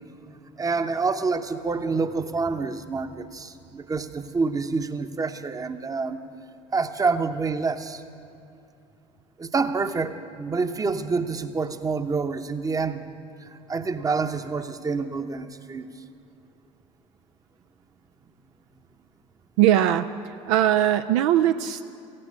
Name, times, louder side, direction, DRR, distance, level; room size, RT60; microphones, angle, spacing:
voice 1, 0.6-6.2 6.7-8.0 9.4-13.0 13.4-15.9, right 4 dB, 20° right, 9 dB, 0.9 m, -27 dB
voice 2, 19.6-20.1 20.5-21.8, right 11 dB, 65° right, 9 dB, 0.4 m, -20 dB
15.5 x 9.8 x 8.6 m, 2.6 s
figure-of-eight pair, 60°, 17 cm